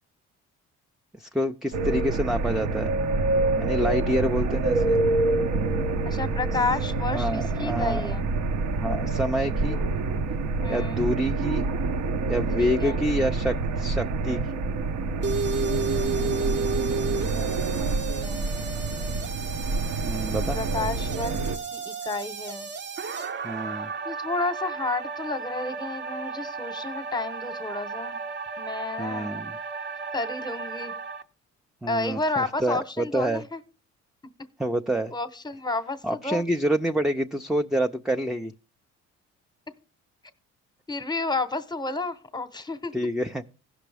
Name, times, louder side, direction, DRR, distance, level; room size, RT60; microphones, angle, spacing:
voice 1, 1.2-2.9 3.6-5.0 7.1-8.1 8.7-9.8 10.7-11.7 12.3-14.4 20.0-20.6 23.4-23.9 29.0-29.5 31.8-33.4 34.6-35.1 36.0-38.5 42.9-43.4, equal, ahead, 5 dB, 0.4 m, -27 dB
sound 1, 1.7-21.6, right 3 dB, 70° right, 0.9 m, -27 dB
voice 2, 6.0-8.3 9.7-10.1 10.6-11.1 12.6-13.1 17.8-18.5 20.5-22.7 24.0-28.2 28.6-29.3 30.1-30.9 31.9-33.6 35.1-36.4 40.9-42.9, left 3 dB, 15° left, 12 dB, 0.9 m, -31 dB
sound 2, 15.2-31.2, right 4 dB, 40° right, 0.8 m, -33 dB
16.0 x 6.1 x 3.4 m, 0.38 s
supercardioid pair, 80°, 29 cm